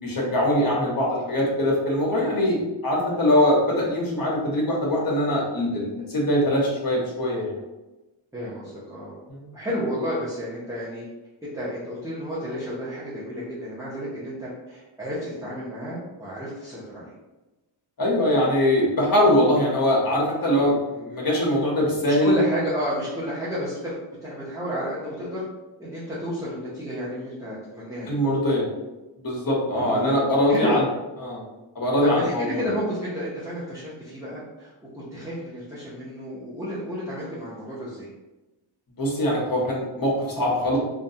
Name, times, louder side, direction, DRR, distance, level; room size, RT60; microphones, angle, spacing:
voice 1, 0.0-2.6 2.8-7.5 9.3-9.5 18.0-22.3 28.1-28.7 29.2-30.8 31.2-31.4 31.7-32.6 39.0-40.8, left 1 dB, 45° left, -3 dB, 0.8 m, -22 dB
voice 2, 8.3-9.1 9.5-11.0 11.4-17.1 22.1-25.4 25.8-28.2 29.8-30.2 30.5-30.8 32.0-38.1, equal, 5° right, -9 dB, 0.6 m, -31 dB
2.3 x 2.1 x 2.7 m, 1.1 s
wide cardioid pair, 105°, 49 cm